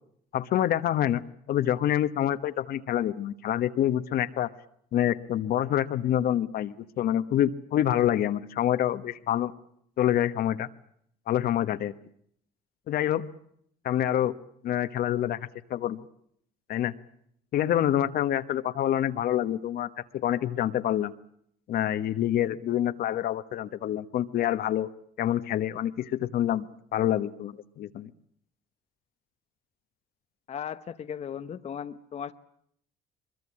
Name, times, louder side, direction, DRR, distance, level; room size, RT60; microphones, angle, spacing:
voice 1, 0.3-1.2 1.5-4.5 4.9-9.5 10.0-10.7 11.3-11.9 12.9-13.3 13.8-14.3 14.6-15.4 15.7-16.0 16.7-16.9 17.5-19.9 20.1-21.1 21.7-24.9 25.2-26.7 26.9-28.1, left 11 dB, 65° left, 11 dB, 1.2 m, -26 dB
voice 2, 30.5-32.3, left 8 dB, 40° left, 9 dB, 0.9 m, -36 dB
23.0 x 22.5 x 8.6 m, 0.69 s
cardioid pair, 110°, 17 cm